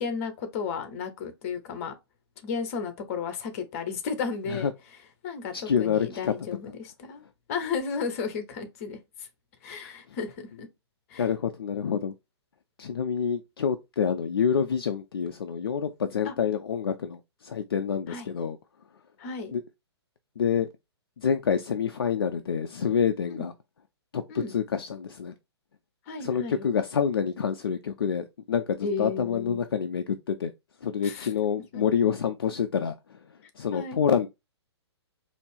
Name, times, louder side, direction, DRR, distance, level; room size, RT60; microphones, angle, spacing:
voice 1, 0.0-1.9 2.4-4.7 5.2-7.2 7.5-9.3 9.6-10.7 11.1-11.3 16.2-16.3 18.1-18.3 19.2-19.5 23.3-23.5 24.3-24.5 26.1-26.7 28.8-29.6 31.0-31.3 31.7-31.8 33.7-34.0, left 5 dB, 35° left, 0.9 m, -33 dB
voice 2, 5.5-6.3 11.2-12.1 12.8-18.6 19.5-19.6 20.4-20.7 21.2-23.5 24.1-25.3 26.2-30.5 30.8-33.2 33.6-34.3, left 7 dB, 55° left, 0.4 m, -27 dB
4.2 x 2.7 x 3.3 m
figure-of-eight pair, 120°, 14 cm